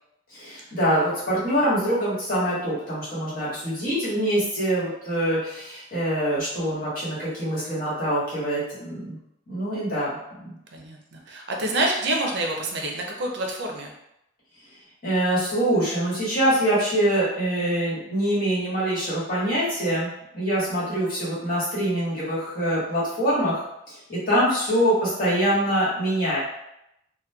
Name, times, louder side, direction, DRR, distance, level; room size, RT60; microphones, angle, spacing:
voice 1, 0.3-9.2 9.5-10.6 15.0-23.6 24.1-26.4, right 1 dB, 50° left, -9 dB, 1.2 m, -24 dB
voice 2, 10.7-13.9, right 1 dB, 60° right, 1 dB, 0.5 m, -27 dB
2.9 x 2.2 x 2.2 m, 0.82 s
head